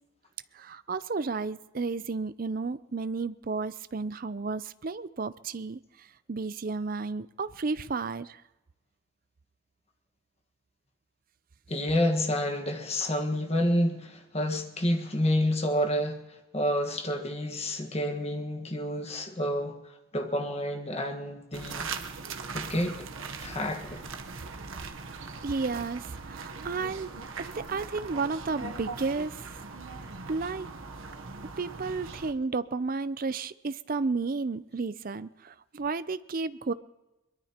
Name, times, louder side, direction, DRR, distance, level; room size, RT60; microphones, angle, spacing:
voice 1, 0.5-5.8 6.3-8.4 25.4-29.6 30.3-30.7 31.6-36.7, right 4 dB, 40° right, 0.5 m, -32 dB
voice 2, 11.7-16.2 16.5-19.8 20.1-21.9 22.5-23.0 23.4-24.0, left 1 dB, 30° left, 1.5 m, -29 dB
sound 1, 21.5-32.3, right 4 dB, 70° right, 1.0 m, -40 dB
22.5 x 22.0 x 2.9 m
head